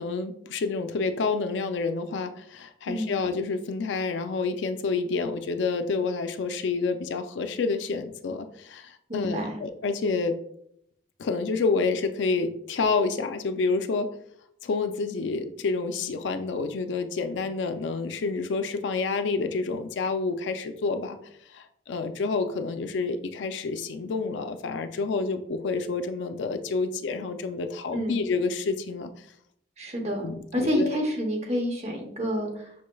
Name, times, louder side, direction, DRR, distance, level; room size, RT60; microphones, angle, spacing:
voice 1, 0.0-10.4 11.2-14.1 14.6-21.2 21.5-29.2 30.2-31.0, left 4 dB, 90° left, 8 dB, 0.4 m, -28 dB
voice 2, 9.1-9.6 27.9-28.2 29.8-32.7, equal, 40° right, 2 dB, 0.8 m, -29 dB
5.6 x 3.1 x 2.2 m, 0.71 s
head